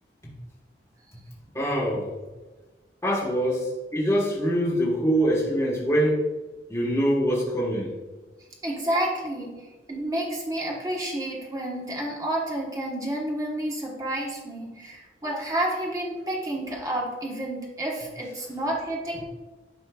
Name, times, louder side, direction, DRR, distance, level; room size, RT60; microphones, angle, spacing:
voice 1, 1.5-2.1 3.0-6.2 6.7-7.9, equal, 15° left, -6 dB, 1.4 m, -24 dB
voice 2, 8.6-9.6 9.9-19.2, right 1 dB, 20° right, -2 dB, 1.2 m, -30 dB
11.5 x 4.3 x 2.4 m, 1.2 s
head